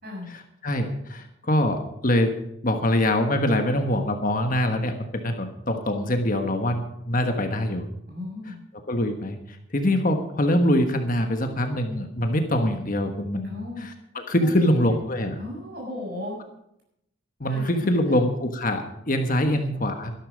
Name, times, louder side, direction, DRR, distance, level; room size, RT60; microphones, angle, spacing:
voice 1, 0.3-2.3 2.6-7.8 8.5-8.6 8.9-15.4 17.4-20.1, left 1 dB, 45° left, 5 dB, 1.3 m, -24 dB
voice 2, 8.1-8.6 13.4-13.8 14.4-15.0 15.4-16.3 17.5-18.2 19.4-19.5, left 2 dB, 50° right, -1 dB, 6.9 m, -35 dB
13.0 x 11.5 x 5.2 m, 0.78 s
head